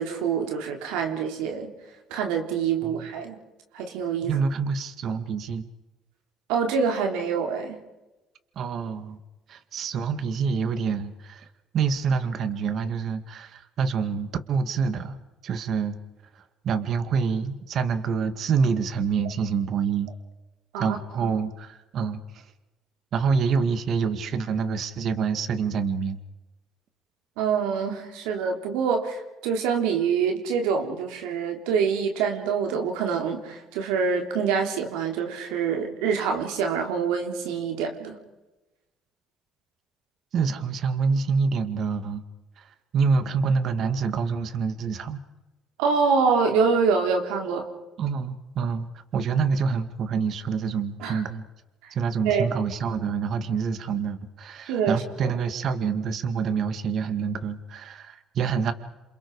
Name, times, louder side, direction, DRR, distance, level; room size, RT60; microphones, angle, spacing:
voice 1, 0.0-1.7 2.1-3.4 3.7-4.3 6.5-7.8 20.7-21.3 27.4-38.2 45.8-47.7 51.0-51.2 52.2-52.5 54.7-55.0, right 6 dB, 85° right, 3 dB, 3.7 m, -25 dB
voice 2, 4.2-5.6 8.6-9.2 9.5-11.5 11.7-15.2 15.4-16.0 16.3-20.1 20.8-22.5 23.1-26.2 40.3-42.2 42.6-45.2 48.0-51.4 51.9-58.7, right 5 dB, 60° right, 10 dB, 2.0 m, -27 dB
28.0 x 27.5 x 4.9 m, 1.1 s
supercardioid pair, 80°, 0 cm